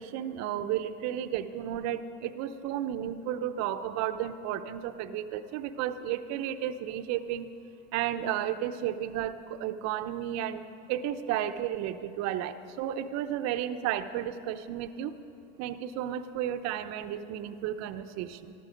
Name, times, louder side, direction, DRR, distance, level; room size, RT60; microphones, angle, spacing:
voice 1, 0.0-7.5 7.9-10.6 10.9-15.1 15.6-18.5, right 11 dB, 50° right, 9 dB, 0.8 m, -33 dB
14.0 x 13.0 x 5.1 m, 2.8 s
hypercardioid pair, 105°, 34 cm